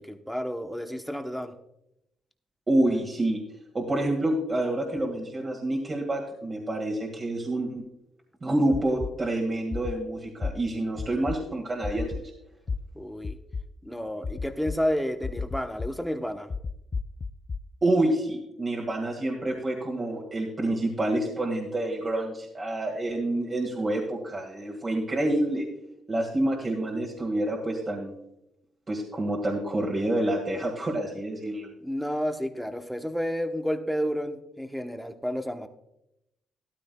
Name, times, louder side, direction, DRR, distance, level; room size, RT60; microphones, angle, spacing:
voice 1, 0.0-1.5 12.9-13.4 13.8-16.5 31.8-35.7, equal, ahead, 6 dB, 1.0 m, -31 dB
voice 2, 2.7-3.4 3.7-7.8 8.4-12.3 17.8-25.7 26.1-28.2 28.9-31.7, right 1 dB, 30° right, -1 dB, 1.9 m, -28 dB
sound 1, 8.7-9.1 9.7-9.9 10.4-10.5 11.0-11.4 11.8-12.2 12.7-12.8 13.2-13.6 14.2-14.8 15.2-15.9 16.5-17.6, left 4 dB, 35° left, 0.4 m, -31 dB
13.5 x 12.0 x 2.3 m, 0.84 s
cardioid pair, 90°, 0 cm